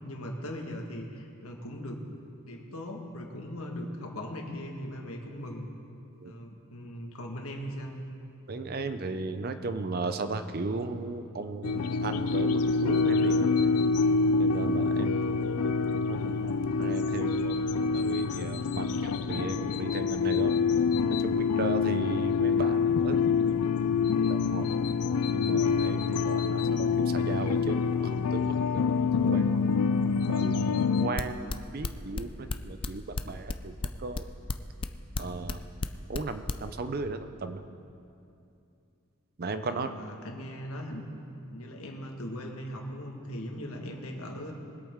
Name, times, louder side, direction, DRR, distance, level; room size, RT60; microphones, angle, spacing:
voice 1, 0.0-2.0 2.4-5.7 6.2-7.9 16.2-16.7 39.7-41.0 41.5-44.5, equal, 75° left, 2 dB, 1.6 m, -39 dB
voice 2, 8.5-13.7 14.4-15.7 16.1-16.5 16.8-17.6 17.9-20.5 21.2-23.2 24.3-24.7 25.3-28.9 29.2-29.6 30.3-34.3 35.2-35.6 36.1-37.6 39.4-39.9, right 3 dB, 45° right, 9 dB, 0.6 m, -36 dB
sound 1, 11.6-31.1, left 5 dB, 90° left, 0.4 m, -26 dB
sound 2, 31.2-36.6, left 3 dB, 25° left, 0.3 m, -31 dB
22.0 x 8.5 x 3.7 m, 2.6 s
head